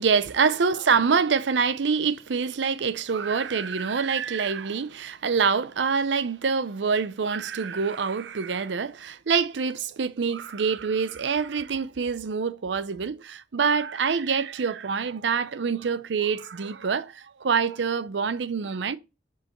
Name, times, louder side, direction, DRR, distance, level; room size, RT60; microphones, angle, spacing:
voice 1, 0.0-19.0, right 5 dB, 90° right, 0.6 m, -26 dB
7.9 x 4.7 x 3.0 m
head